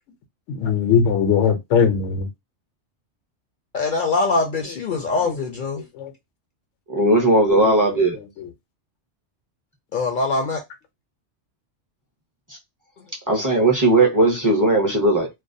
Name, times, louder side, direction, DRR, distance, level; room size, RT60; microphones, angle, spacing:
voice 1, 0.5-2.3 4.9-5.0 5.2-5.3 5.8-6.1 7.4-8.0 8.4-8.5 14.2-14.3 14.6-14.7, left 7 dB, 85° left, 0.9 m, -21 dB
voice 2, 3.7-5.8 9.9-10.6, left 3 dB, 60° left, 0.6 m, -23 dB
voice 3, 6.9-8.2 13.3-15.3, right 2 dB, 25° right, 0.5 m, -17 dB
2.3 x 2.2 x 2.5 m
omnidirectional pair, 1.2 m